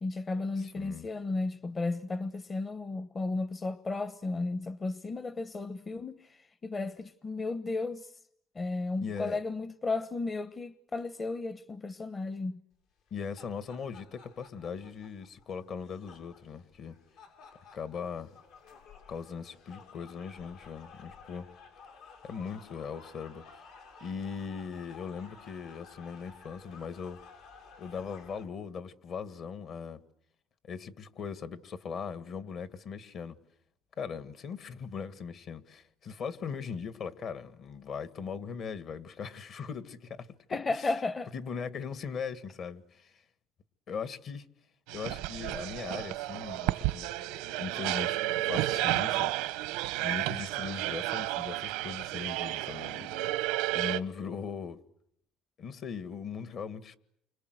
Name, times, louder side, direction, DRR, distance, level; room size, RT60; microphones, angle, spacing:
voice 1, 0.0-8.2 8.5-12.6 40.5-41.3, left 3 dB, 25° left, 1.0 m, -34 dB
voice 2, 0.6-1.1 9.0-9.4 13.1-17.0 17.7-18.3 19.1-21.5 22.2-23.6 24.0-27.2 27.8-30.0 30.7-33.4 34.0-40.3 40.7-40.9 41.3-43.2 43.9-44.5 44.9-47.1 47.6-49.5 50.0-54.8 55.6-57.0, left 6 dB, 50° left, 1.9 m, -39 dB
sound 1, 13.0-28.4, left 5 dB, 80° left, 6.7 m, -54 dB
sound 2, 44.9-54.0, right 17 dB, 90° right, 1.0 m, -32 dB
29.5 x 25.0 x 8.0 m
supercardioid pair, 100°, 0 cm